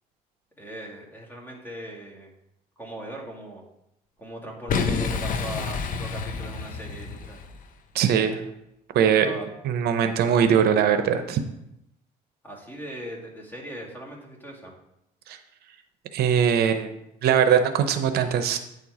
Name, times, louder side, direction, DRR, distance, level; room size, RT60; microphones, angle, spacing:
voice 1, 0.6-2.3 2.8-3.6 4.2-7.4 9.1-9.5 12.4-14.7, right 1 dB, 10° left, -2 dB, 2.2 m, -39 dB
Boom, 4.7-7.7, left 5 dB, 55° left, 0.8 m, -29 dB
voice 2, 7.9-8.4 8.9-9.3 9.6-11.4 15.3-15.4 16.1-16.9 17.2-18.6, right 8 dB, 70° right, 8 dB, 0.7 m, -21 dB
9.1 x 4.5 x 4.8 m, 0.83 s
cardioid pair, 110°, 17 cm